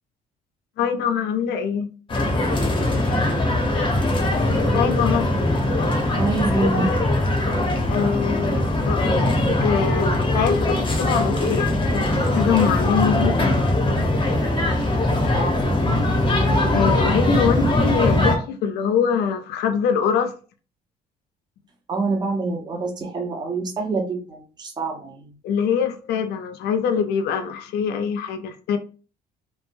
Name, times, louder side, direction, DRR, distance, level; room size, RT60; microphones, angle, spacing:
voice 1, 0.8-1.9 4.7-5.3 7.9-14.1 16.7-20.3 25.4-28.8, left 7 dB, 75° left, 0.5 m, -24 dB
sound 1, 2.1-18.4, left 1 dB, 30° left, 0.8 m, -21 dB
voice 2, 6.2-6.9 15.3-16.0 21.9-25.3, right 3 dB, 25° right, 0.7 m, -26 dB
3.2 x 2.1 x 2.5 m
cardioid pair, 110°, 17 cm